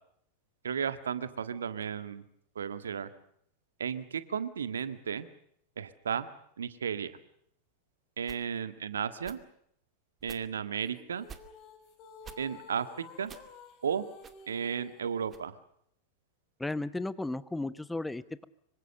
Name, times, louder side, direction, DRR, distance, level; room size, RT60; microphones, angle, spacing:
voice 1, 0.6-2.2 2.5-3.1 3.8-5.3 5.8-6.3 6.6-7.1 8.2-9.4 10.2-11.3 12.4-13.3 13.8-14.1 14.5-15.5, right 7 dB, 70° right, 11 dB, 1.7 m, -34 dB
sound 1, 8.2-8.5 9.2-9.4 10.2-10.5 11.2-11.5 12.2-12.4 13.2-13.5 14.2-14.3 15.2-15.5, right 7 dB, 25° right, 2.2 m, -49 dB
sound 2, 10.8-15.3, left 5 dB, 40° left, 4.7 m, -52 dB
voice 2, 16.6-18.4, left 2 dB, 5° left, 16 dB, 0.9 m, -34 dB
26.0 x 24.0 x 6.7 m, 0.70 s
figure-of-eight pair, 90°, 0 cm